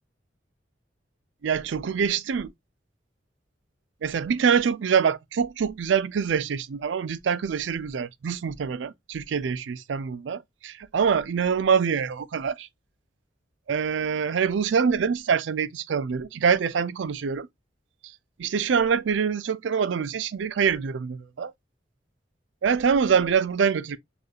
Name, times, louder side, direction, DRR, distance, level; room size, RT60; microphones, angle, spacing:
voice 1, 1.4-2.5 4.0-12.7 13.7-17.5 18.4-21.5 22.6-24.0, right 6 dB, 80° right, 0.4 m, -25 dB
6.5 x 2.5 x 2.3 m
head